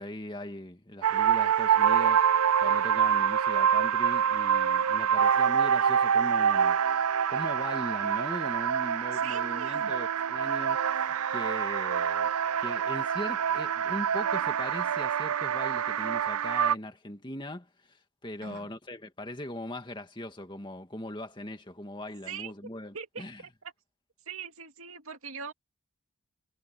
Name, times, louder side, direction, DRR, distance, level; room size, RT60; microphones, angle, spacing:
voice 1, 0.0-2.2 2.6-6.8 7.3-12.3 12.6-18.0 18.2-23.4, left 1 dB, 20° left, 2.1 m, -40 dB
sound 1, 1.0-16.8, right 8 dB, 90° right, 0.5 m, -26 dB
voice 2, 9.1-9.9 18.4-18.7 22.3-22.5 22.9-23.7 24.3-25.5, right 6 dB, 70° right, 2.4 m, -41 dB
head